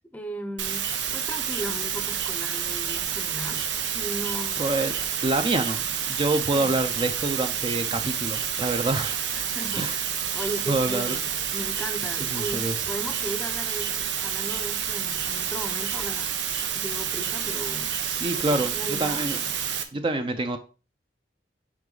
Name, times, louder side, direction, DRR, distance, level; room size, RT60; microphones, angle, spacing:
voice 1, 0.1-3.6 3.9-4.6 6.5-6.7 9.3-10.0 10.3-16.3 16.7-19.2, right 1 dB, 10° left, 0.7 m, -37 dB
sound 1, 0.6-19.8, right 8 dB, 90° right, 0.8 m, -29 dB
voice 2, 4.6-5.0 5.2-9.1 9.8-10.0 10.7-11.2 12.2-12.8 18.0-19.4 19.9-20.6, right 2 dB, 30° right, 0.5 m, -27 dB
6.1 x 4.9 x 3.8 m
head